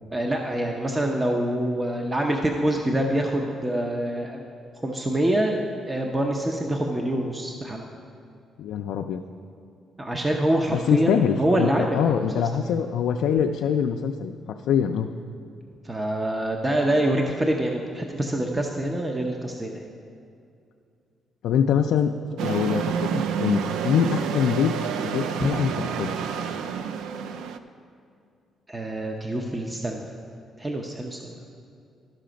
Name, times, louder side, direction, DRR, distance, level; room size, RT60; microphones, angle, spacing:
voice 1, 0.1-4.4 4.8-7.9 10.0-12.0 15.8-19.9 28.7-30.1 30.6-31.3, right 1 dB, 20° right, 1 dB, 0.7 m, -25 dB
voice 2, 8.6-9.2 10.7-14.4 14.7-15.1 21.4-22.1 22.4-24.7 25.0-25.7 26.0-26.1, left 8 dB, 80° left, 3 dB, 0.3 m, -24 dB
sound 1, 22.4-27.6, right 7 dB, 85° right, 0.4 m, -28 dB
12.0 x 5.7 x 5.1 m, 2.4 s
cardioid pair, 90°, 0 cm